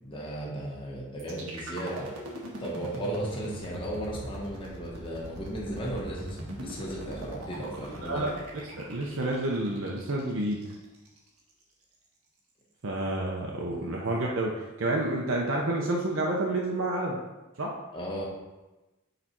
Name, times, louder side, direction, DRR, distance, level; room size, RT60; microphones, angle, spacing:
voice 1, 0.0-2.1 2.6-8.3 13.7-13.8 17.9-18.2, right 1 dB, 25° left, -4 dB, 1.5 m, -35 dB
sound 1, 1.2-11.2, right 1 dB, 90° right, 1.4 m, -41 dB
voice 2, 8.0-8.3 8.9-10.6 12.8-14.5 14.8-17.2 17.6-17.7, right 2 dB, 65° right, -2 dB, 0.8 m, -29 dB
6.6 x 4.3 x 4.4 m, 1.1 s
head